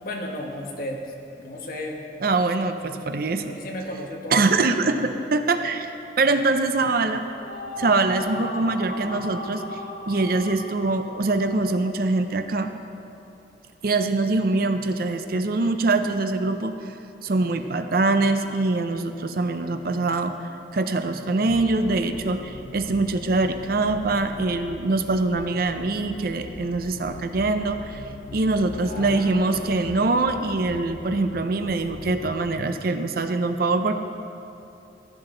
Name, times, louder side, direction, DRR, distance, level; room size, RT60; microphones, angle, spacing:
voice 1, 0.0-2.0 3.3-5.1 28.8-30.1, left 1 dB, 50° left, 0 dB, 1.4 m, -35 dB
voice 2, 2.2-3.6 4.3-5.9 6.2-7.2 7.8-9.6 10.1-12.7 13.8-16.7 17.2-20.3 20.7-28.0 28.3-34.0, right 3 dB, 55° right, 8 dB, 0.6 m, -23 dB
sound 1, 7.3-12.5, left 1 dB, 70° left, 2.4 m, -37 dB
sound 2, 21.5-32.7, left 2 dB, 85° left, 0.7 m, -41 dB
14.5 x 11.0 x 3.8 m, 2.8 s
head